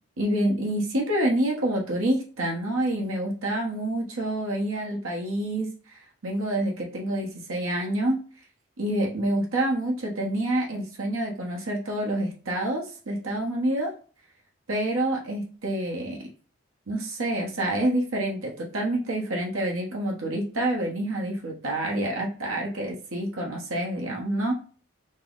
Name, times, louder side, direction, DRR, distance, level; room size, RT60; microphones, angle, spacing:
voice 1, 0.2-8.2 8.8-13.9 14.7-16.3 16.9-24.5, right 1 dB, 85° right, -1 dB, 1.0 m, -27 dB
5.2 x 2.0 x 3.8 m, 0.40 s
head